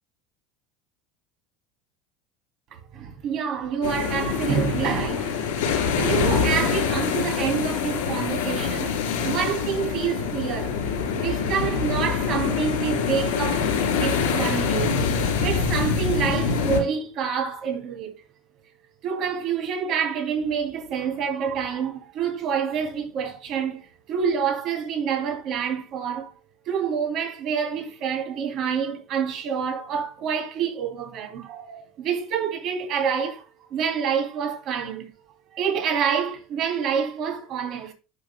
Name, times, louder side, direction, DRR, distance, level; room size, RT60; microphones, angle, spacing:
voice 1, 2.9-8.9 9.2-10.8 11.1-13.7 14.0-15.0 15.4-18.1 19.0-26.3 26.7-33.4 33.7-35.1 35.5-37.9, right 7 dB, 55° right, 2.8 m, -27 dB
sound 1, 3.8-16.8, left 6 dB, 90° left, 2.4 m, -25 dB
11.0 x 5.9 x 2.2 m
supercardioid pair, 110°, 0 cm